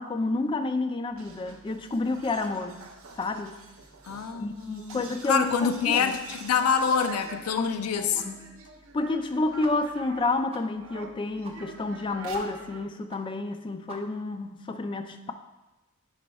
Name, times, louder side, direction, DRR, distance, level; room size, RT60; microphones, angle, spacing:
voice 1, 0.0-2.8 3.2-3.6 4.4-6.2 7.6-8.4 8.9-15.3, left 2 dB, 25° left, 8 dB, 0.3 m, -30 dB
sound 1, 1.1-10.4 10.8-12.9, right 3 dB, 70° right, 0.8 m, -46 dB
voice 2, 4.0-8.2, left 6 dB, 90° left, 8 dB, 0.5 m, -26 dB
sound 2, 9.6-9.7 10.0-10.1 10.5-10.6 11.0-11.1 11.4-11.6 11.8-12.0 12.3-12.4 12.7-12.8 13.1-13.2 13.5-13.6 13.9-14.3, right 3 dB, 25° right, 0.6 m, -45 dB
10.0 x 4.2 x 2.3 m, 1.1 s
head